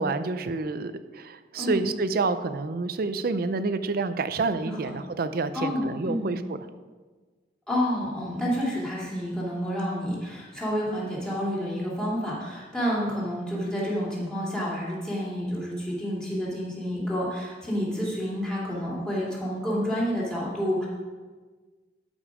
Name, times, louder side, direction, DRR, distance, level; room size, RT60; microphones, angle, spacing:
voice 1, 0.0-6.6, right 3 dB, 55° right, 11 dB, 0.5 m, -28 dB
voice 2, 1.5-1.9 4.6-4.9 5.5-6.3 7.7-20.9, equal, 5° left, -6 dB, 2.7 m, -29 dB
12.5 x 5.4 x 4.9 m, 1.4 s
head